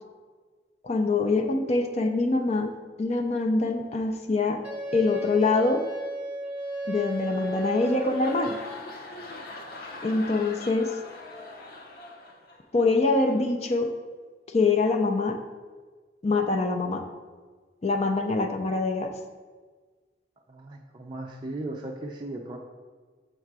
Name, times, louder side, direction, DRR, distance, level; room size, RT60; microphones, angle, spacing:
voice 1, 0.8-2.7 3.0-4.6 4.9-5.8 6.9-8.5 10.0-10.9 12.7-13.9 14.5-15.4 16.2-17.0 17.8-19.1, left 3 dB, 35° left, 4 dB, 0.4 m, -24 dB
Wind instrument woodwind instrument, 4.6-8.8, right 2 dB, 10° right, 0.8 m, -34 dB
sound 1, 6.9-12.8 13.2-13.5, left 2 dB, 55° left, 0.8 m, -43 dB
voice 2, 20.5-22.6, right 2 dB, 25° right, -1 dB, 0.4 m, -37 dB
6.6 x 3.8 x 4.7 m, 1.5 s
head